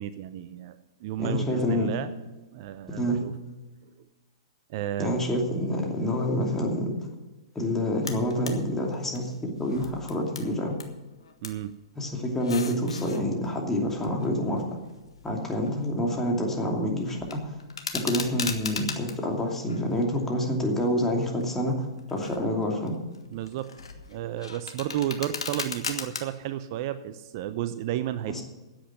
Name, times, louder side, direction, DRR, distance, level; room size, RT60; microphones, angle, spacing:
voice 1, 0.0-2.1 2.5-3.3 4.7-5.2 11.4-11.7 23.3-23.7 24.1-28.4, right 12 dB, 50° right, 12 dB, 0.7 m, -32 dB
voice 2, 1.2-1.9 3.0-3.2 5.0-7.0 7.5-10.8 12.0-14.7 15.2-17.5 17.9-22.9 28.3-28.4, left 1 dB, 10° left, 0 dB, 2.8 m, -27 dB
sound 1, 8.0-8.6 8.9-10.9 11.2-11.6 12.3-13.2 13.9-16.0 16.3-16.7 17.0-19.2 19.7-20.6 21.1-21.4 22.0-22.5 22.9-26.2, left 5 dB, 85° left, 1.5 m, -37 dB
10.0 x 8.1 x 9.9 m, 1.1 s
hypercardioid pair, 120°, 3 cm